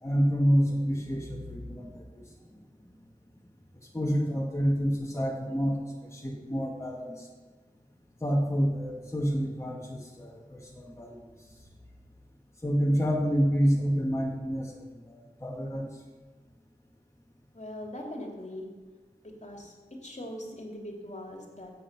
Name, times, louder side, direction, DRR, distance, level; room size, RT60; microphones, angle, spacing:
voice 1, 0.0-2.0 3.9-7.3 8.2-11.2 12.6-15.9, equal, 20° left, -2 dB, 2.0 m, -28 dB
voice 2, 17.5-18.7 19.4-19.7 20.0-21.7, left 1 dB, 50° left, 0 dB, 2.7 m, -40 dB
14.5 x 7.9 x 6.1 m, 1.3 s
wide cardioid pair, 45°, 15 cm